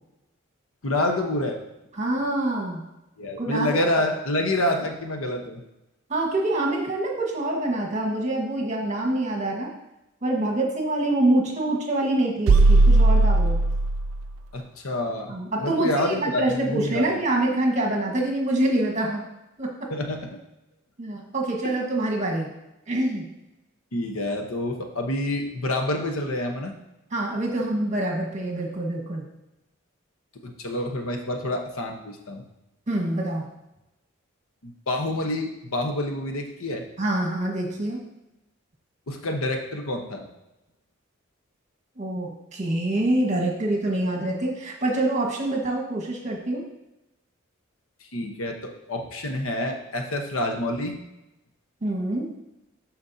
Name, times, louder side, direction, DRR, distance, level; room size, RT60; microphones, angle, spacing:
voice 1, 0.8-1.6 3.2-5.6 14.5-15.3 15.6-17.2 19.9-20.3 23.9-26.7 30.4-32.4 34.6-36.8 39.1-40.2 48.1-50.9, left 1 dB, 75° left, 3 dB, 1.0 m, -27 dB
voice 2, 2.0-2.8 3.4-3.7 6.1-9.7 10.2-13.6 15.3-19.2 19.6-19.7 21.0-22.5 22.9-23.2 27.1-29.2 32.9-33.4 37.0-38.0 42.0-46.6 51.8-52.3, right 1 dB, 35° right, -1 dB, 1.5 m, -25 dB
sound 1, 12.5-14.3, right 2 dB, 70° right, 0.4 m, -17 dB
12.0 x 4.4 x 2.7 m, 0.94 s
head